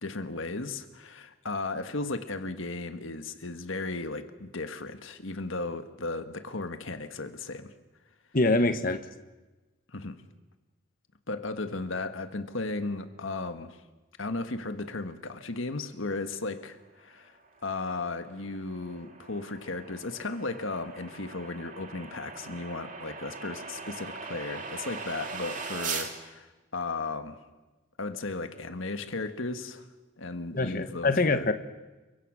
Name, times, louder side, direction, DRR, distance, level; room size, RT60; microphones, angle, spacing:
voice 1, 0.0-7.7 9.9-10.2 11.3-13.8 14.2-17.4 17.6-27.4 28.0-29.9 30.2-31.5, left 3 dB, 70° left, 9 dB, 1.6 m, -35 dB
voice 2, 8.3-9.0 30.5-31.5, left 2 dB, 40° left, 9 dB, 1.3 m, -24 dB
sound 1, 17.4-26.1, right 5 dB, 35° right, 2.9 m, -40 dB
29.5 x 24.0 x 6.4 m, 1.2 s
head